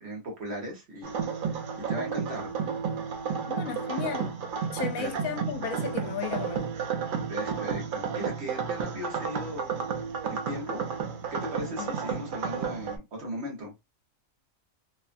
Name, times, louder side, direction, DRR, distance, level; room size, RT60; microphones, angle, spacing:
voice 1, 0.0-2.5 5.0-5.2 7.3-9.8 10.3-10.8 11.3-13.7, equal, 55° right, 1.3 m, -38 dB
sound 1, 1.0-13.0, right 6 dB, 85° right, 0.4 m, -32 dB
voice 2, 3.5-4.4 4.7-6.7 11.8-11.9, left 7 dB, 80° left, 1.0 m, -34 dB
2.9 x 2.3 x 2.5 m
omnidirectional pair, 1.4 m